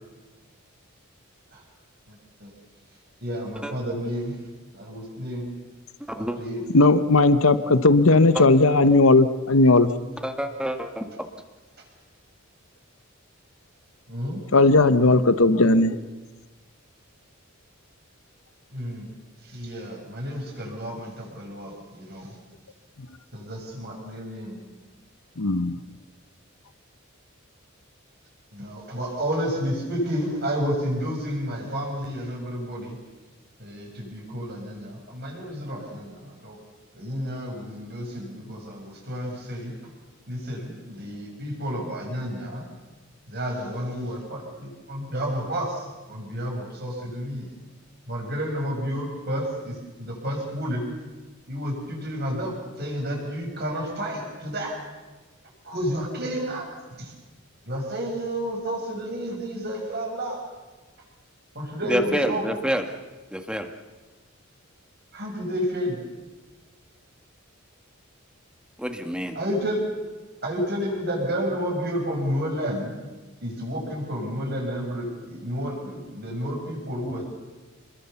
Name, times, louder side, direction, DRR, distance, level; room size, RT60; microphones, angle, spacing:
voice 1, 2.1-2.5 3.2-4.3 4.7-5.5 6.2-6.6 14.1-14.4 18.7-19.1 19.4-22.3 23.3-24.6 28.5-33.0 33.6-36.6 36.9-39.7 40.3-42.6 43.3-47.5 48.1-50.8 51.5-54.8 55.6-56.7 57.0-57.1 57.7-60.4 61.5-62.5 65.1-66.0 69.3-69.8 70.4-72.9 73.4-77.3, equal, 50° right, 0 dB, 7.2 m, -31 dB
voice 2, 6.0-6.4 8.3-8.4 10.2-11.0 61.9-62.8 63.3-63.7 68.8-69.4, equal, 5° right, 6 dB, 1.6 m, -27 dB
voice 3, 6.7-9.9 14.5-16.0 25.4-25.8, left 2 dB, 80° left, 12 dB, 1.0 m, -17 dB
27.5 x 21.5 x 7.1 m, 1.3 s
head